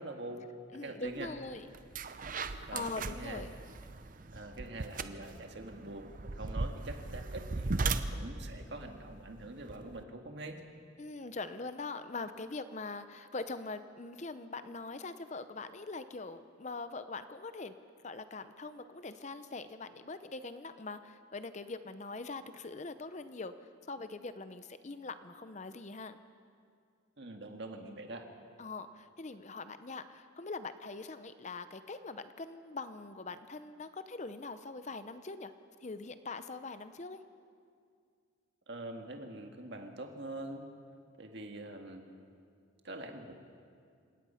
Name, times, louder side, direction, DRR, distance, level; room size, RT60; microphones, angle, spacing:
voice 1, 0.0-1.3 2.7-3.5 4.3-10.6 27.2-28.3 38.7-40.7 41.2-42.1 42.8-43.3, right 2 dB, 55° right, 4 dB, 1.9 m, -44 dB
voice 2, 0.7-1.7 2.5-3.5 11.0-17.8 18.0-26.2 28.6-35.5 35.8-37.2, left 3 dB, 35° left, 11 dB, 0.7 m, -42 dB
sound 1, 1.2-1.4 1.7-10.0, right 3 dB, 40° right, 0.7 m, -38 dB
28.5 x 17.5 x 5.8 m, 2.3 s
head